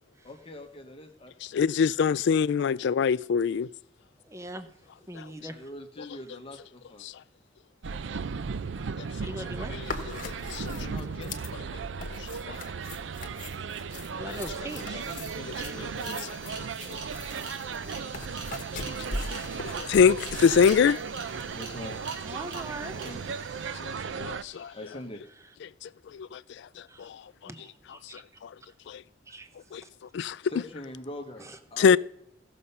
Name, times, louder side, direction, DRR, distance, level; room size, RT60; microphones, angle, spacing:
voice 1, 0.2-1.3 5.5-7.1 10.6-11.6 15.1-17.0 17.4-18.2 21.5-22.2 23.0-23.4 24.2-25.2 29.3-29.4 30.4-32.0, left 1 dB, 30° left, 1.0 m, -44 dB
voice 2, 1.5-3.7 5.1-5.3 7.0-7.1 9.0-9.1 9.7-9.9 10.3-10.7 12.5-12.6 14.3-14.4 16.2-16.3 18.7-19.4 19.8-21.0 23.8-23.9 24.2-24.7 25.6-27.2 28.1-28.5 28.9-29.0 29.7-29.8 30.1-30.4 31.8-32.0, left 6 dB, 65° left, 0.3 m, -25 dB
voice 3, 4.2-4.7 5.1-5.6 9.2-9.7 14.1-15.0 22.2-23.0 23.9-24.1 26.9-27.1 27.4-28.2 29.3-29.5 29.8-29.9 31.4-31.6, right 1 dB, 15° right, 0.9 m, -40 dB
sound 1, 7.8-24.4, right 5 dB, 70° right, 0.5 m, -36 dB
sound 2, 9.8-21.4, left 3 dB, 45° left, 1.3 m, -41 dB
sound 3, 13.9-14.0 14.2-25.0, right 3 dB, 90° right, 3.1 m, -46 dB
16.0 x 6.8 x 5.4 m
head